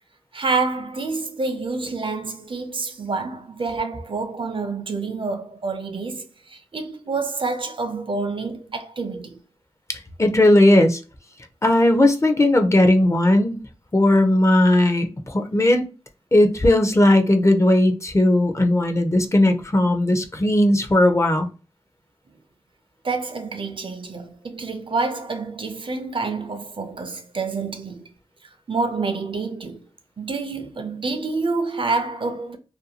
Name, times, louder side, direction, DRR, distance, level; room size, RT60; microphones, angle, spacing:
voice 1, 0.3-9.4 23.0-28.1 28.4-29.8 30.2-32.6, right 3 dB, 50° right, 0.5 m, -28 dB
voice 2, 9.9-11.0 11.6-13.6 13.9-15.9 16.3-21.5, left 1 dB, 25° left, 0.5 m, -17 dB
2.5 x 2.3 x 2.7 m
wide cardioid pair, 60°, 11 cm